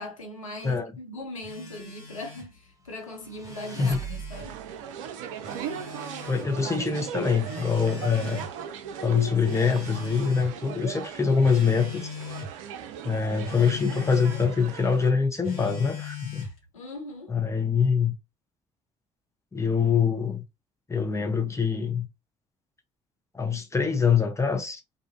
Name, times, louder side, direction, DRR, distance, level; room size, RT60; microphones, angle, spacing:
voice 1, 0.0-4.6 16.7-17.4, left 2 dB, 90° left, 0.5 m, -39 dB
Telephone, 1.4-2.5 3.3-4.5 5.4-6.5 7.4-8.5 9.4-10.6 11.4-12.5 13.4-14.5 15.4-16.6, left 4 dB, 60° left, 1.5 m, -39 dB
sound 1, 3.1-4.8, right 7 dB, 20° right, 0.5 m, -40 dB
sound 2, 4.3-15.1, right 8 dB, 75° right, 0.4 m, -38 dB
voice 2, 6.2-8.4 9.0-12.1 13.0-16.5 17.3-18.1 19.5-20.4 20.9-22.1 23.3-24.8, left 6 dB, 15° left, 0.8 m, -24 dB
2.6 x 2.4 x 2.5 m
figure-of-eight pair, 45°, 17 cm